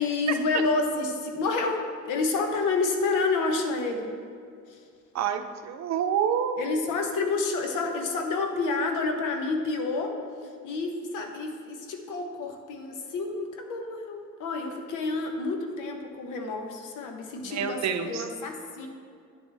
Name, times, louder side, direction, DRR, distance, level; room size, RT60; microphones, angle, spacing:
voice 1, 0.0-4.1 6.6-10.2 10.6-18.9, left 3 dB, 90° left, 4 dB, 1.0 m, -29 dB
voice 2, 5.1-6.6 17.4-18.3, right 8 dB, 65° right, 7 dB, 0.6 m, -28 dB
9.6 x 7.4 x 3.4 m, 2.3 s
cardioid pair, 90°, 30 cm